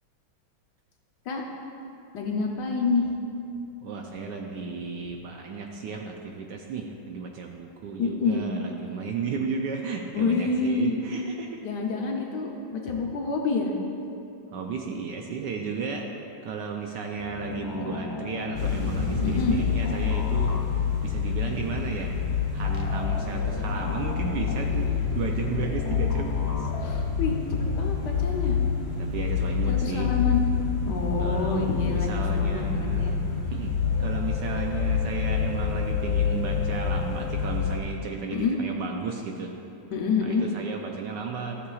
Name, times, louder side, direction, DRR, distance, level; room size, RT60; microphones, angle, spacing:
voice 1, 2.1-3.1 8.0-8.5 10.1-11.0 11.6-13.7 19.2-19.6 26.8-27.4 27.7-28.6 29.7-30.4 30.8-33.2 38.3-38.6 39.9-40.4, left 4 dB, 65° left, 0 dB, 1.2 m, -27 dB
voice 2, 3.8-11.6 14.5-16.1 16.4-20.6 21.0-22.1 22.5-26.7 29.0-30.1 31.2-33.1 33.5-33.7 34.0-39.5 40.3-41.6, right 5 dB, 75° right, 2 dB, 1.1 m, -34 dB
sound 1, 17.2-21.0 22.6-27.0, left 3 dB, 90° left, 0.5 m, -38 dB
sound 2, 18.5-37.8, left 6 dB, 35° left, 1.5 m, -27 dB
14.0 x 6.7 x 2.4 m, 2.8 s
omnidirectional pair, 2.2 m